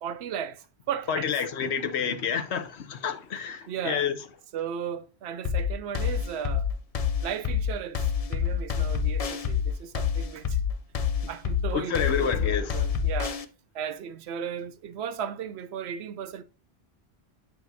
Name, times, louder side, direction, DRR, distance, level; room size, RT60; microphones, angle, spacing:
voice 1, 0.0-1.3 3.7-4.1 4.5-6.7 7.2-10.6 11.3-13.4 13.7-16.4, right 8 dB, 80° right, 0.8 m, -35 dB
voice 2, 1.1-4.1 11.7-12.9, left 7 dB, 85° left, 1.1 m, -29 dB
sound 1, 5.4-13.4, left 7 dB, 45° left, 0.5 m, -27 dB
9.1 x 4.9 x 2.6 m
omnidirectional pair, 1.1 m